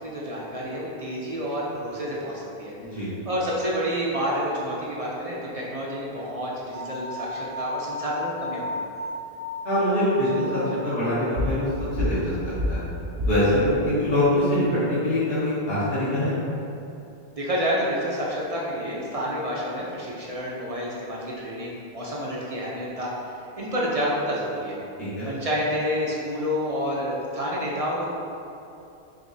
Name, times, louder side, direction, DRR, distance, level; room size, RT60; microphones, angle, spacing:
voice 1, 0.0-2.7 3.3-8.8 17.4-24.8 25.2-28.1, equal, 45° right, -5 dB, 0.5 m, -29 dB
sound 1, 6.7-11.8, left 1 dB, 70° right, 0.8 m, -35 dB
voice 2, 9.6-11.7 12.0-12.8 13.3-16.3 25.0-25.3, left 1 dB, 65° left, -12 dB, 1.3 m, -24 dB
sound 2, 11.4-11.7 12.0-13.6, left 1 dB, 90° right, 1.2 m, -27 dB
4.9 x 3.0 x 2.6 m, 2.7 s
omnidirectional pair, 1.1 m